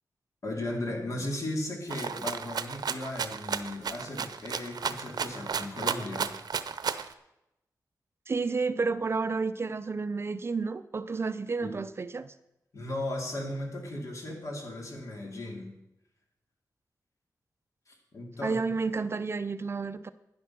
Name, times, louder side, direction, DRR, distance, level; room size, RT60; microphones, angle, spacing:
voice 1, 0.4-6.3 11.6-11.8 12.7-15.7 17.9-18.6, left 1 dB, 50° left, 1 dB, 2.9 m, -36 dB
Rattle (instrument), 1.9-7.1, right 6 dB, 80° right, 0.7 m, -33 dB
voice 2, 8.3-12.3 18.4-20.1, right 4 dB, 40° right, 12 dB, 0.5 m, -31 dB
12.0 x 10.5 x 6.0 m, 0.87 s
wide cardioid pair, 150°, 7 cm